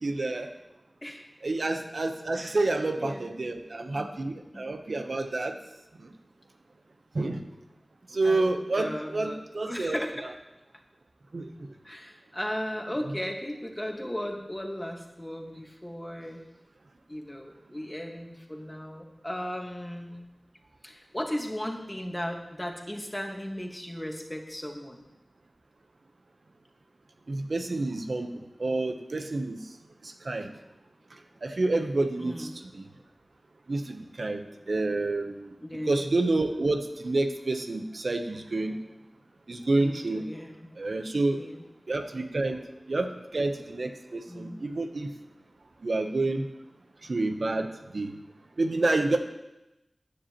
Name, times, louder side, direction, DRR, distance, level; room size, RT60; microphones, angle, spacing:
voice 1, 0.0-0.5 1.4-5.6 6.0-6.1 7.1-7.4 8.1-10.0 11.3-11.5 27.3-29.6 30.0-30.5 31.4-32.8 33.7-35.5 35.9-38.8 39.5-40.2 40.8-41.4 41.9-42.6 42.9-45.1 45.8-46.5 47.0-48.1 48.6-49.2, right 2 dB, 70° right, 5 dB, 0.9 m, -29 dB
voice 2, 3.0-3.4 3.9-4.2 4.5-4.8 8.2-8.5 8.8-10.3 11.8-16.5 17.1-20.2 20.8-25.0 32.2-32.5 35.6-36.0 39.8-40.7 41.4-41.6 44.3-44.7, equal, 15° left, 2 dB, 1.6 m, -36 dB
14.5 x 10.0 x 3.0 m, 0.95 s
wide cardioid pair, 65°, 0 cm